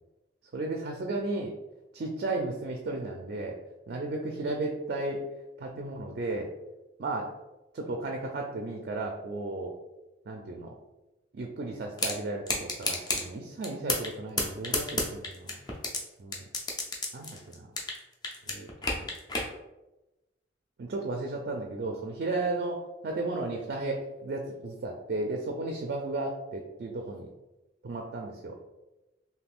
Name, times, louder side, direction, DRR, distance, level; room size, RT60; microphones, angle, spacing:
voice 1, 0.5-1.5 1.9-3.6 3.9-5.2 5.6-6.5 7.0-7.3 7.7-9.7 10.3-10.7 11.3-15.6 16.2-16.4 17.1-17.7 18.5-19.1 20.8-22.8 23.0-27.3 27.8-28.6, right 2 dB, 55° right, 1 dB, 0.4 m, -34 dB
sound 1, 12.0-12.1 12.5-13.2 13.6-14.1 14.4-16.0 16.3-18.0 18.2-19.5, left 2 dB, 20° left, 0.5 m, -29 dB
3.4 x 2.7 x 2.4 m, 1.0 s
head